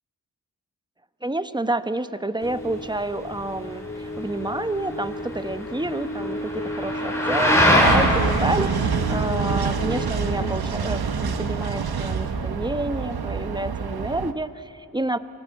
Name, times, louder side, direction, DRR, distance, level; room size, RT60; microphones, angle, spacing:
voice 1, 1.2-15.2, right 1 dB, 10° right, 11 dB, 1.0 m, -29 dB
sound 1, 2.4-10.5, left 1 dB, 35° left, 1.3 m, -34 dB
sound 2, 2.4-12.3, equal, 5° left, 5.2 m, -26 dB
sound 3, 7.8-14.3, right 6 dB, 75° right, 1.1 m, -26 dB
26.0 x 17.5 x 8.4 m, 2.9 s
cardioid pair, 45°, 38 cm